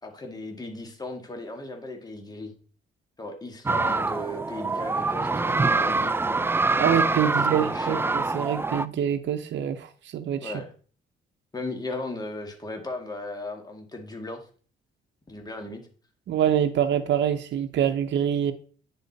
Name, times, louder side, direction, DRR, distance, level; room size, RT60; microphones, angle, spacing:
voice 1, 0.0-2.5 3.2-6.2 7.3-8.0 10.4-10.7 11.5-14.4 15.3-15.8, left 2 dB, 20° left, 3 dB, 1.7 m, -37 dB
sound 1, 3.7-8.9, right 3 dB, 10° right, 0.3 m, -25 dB
voice 2, 6.8-10.5 16.3-18.5, right 9 dB, 65° right, 7 dB, 0.8 m, -25 dB
9.6 x 4.3 x 4.0 m, 0.41 s
cardioid pair, 90°, 20 cm